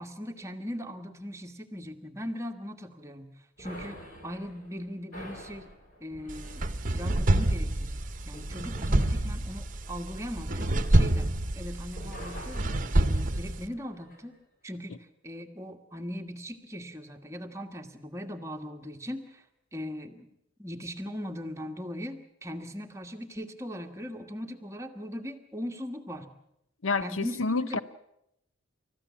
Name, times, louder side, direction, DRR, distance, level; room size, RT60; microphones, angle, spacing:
voice 1, 0.0-3.3 3.6-5.7 6.0-8.0 8.3-12.6 12.9-14.4 14.6-19.4 19.7-20.3 20.6-26.3 27.0-27.8, equal, 15° right, 4 dB, 1.4 m, -39 dB
sound 1, 3.6-11.6 11.9-14.2, equal, 40° left, 4.2 m, -48 dB
sound 2, 6.3-13.7, right 1 dB, 40° right, 1.1 m, -27 dB
voice 2, 26.8-27.8, left 3 dB, 65° left, 13 dB, 0.8 m, -28 dB
30.0 x 14.5 x 7.3 m, 0.82 s
head